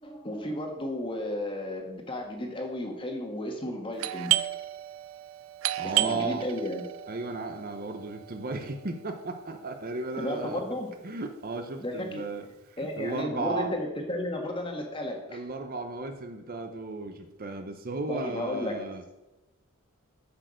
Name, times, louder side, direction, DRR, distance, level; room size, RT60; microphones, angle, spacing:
voice 1, 0.0-4.4 5.8-6.8 10.2-10.9 11.8-12.2 12.8-15.4 18.1-18.8, left 1 dB, 25° left, 2 dB, 1.6 m, -33 dB
Doorbell, 4.0-9.4, right 15 dB, 60° right, 0.4 m, -32 dB
voice 2, 5.8-6.5 7.1-10.6 11.0-13.7 15.3-19.0, right 3 dB, 40° right, 6 dB, 0.8 m, -35 dB
8.1 x 6.6 x 6.4 m, 1.0 s
head